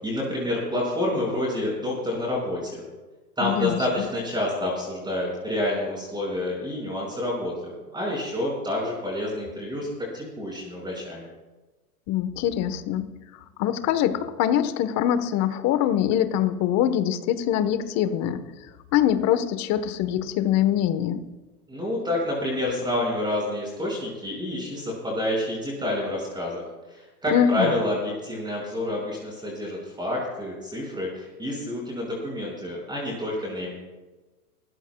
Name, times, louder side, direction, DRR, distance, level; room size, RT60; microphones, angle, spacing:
voice 1, 0.0-2.8 3.4-11.3 21.7-26.6 26.9-33.7, left 1 dB, 10° right, -2 dB, 5.6 m, -28 dB
voice 2, 3.4-4.1 12.1-13.1 13.6-18.4 18.9-21.2 27.3-27.8, left 10 dB, 35° left, 11 dB, 1.3 m, -23 dB
24.0 x 14.0 x 2.3 m, 1.2 s
hypercardioid pair, 110°, 45 cm